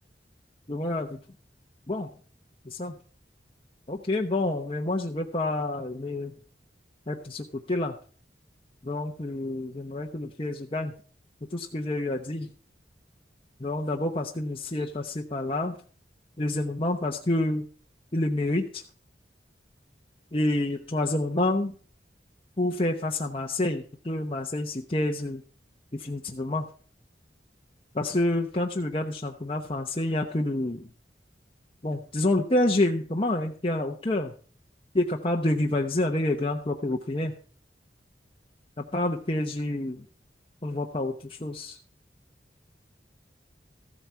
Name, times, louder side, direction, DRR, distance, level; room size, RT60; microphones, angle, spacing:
voice 1, 0.7-1.2 1.9-2.1 2.7-2.9 3.9-6.3 7.1-7.9 8.8-10.9 11.5-12.5 13.6-15.8 16.4-17.6 18.1-18.8 20.3-21.7 22.6-25.4 25.9-26.7 27.9-30.8 31.8-34.3 34.9-37.3 38.9-40.0 40.6-41.1 41.4-41.8, left 1 dB, 30° left, 1 dB, 0.9 m, -28 dB
14.5 x 8.0 x 4.7 m, 0.42 s
head